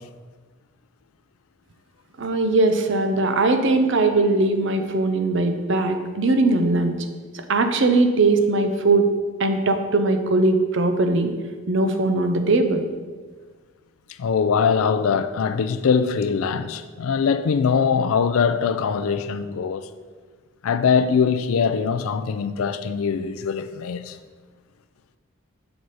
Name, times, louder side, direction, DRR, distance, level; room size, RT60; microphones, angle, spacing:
voice 1, 2.2-7.0 7.5-9.1 9.4-11.3 11.7-12.8, right 2 dB, 60° right, 0.6 m, -20 dB
voice 2, 14.2-19.9 20.6-24.2, left 6 dB, 80° left, 0.4 m, -22 dB
6.0 x 4.8 x 4.0 m
head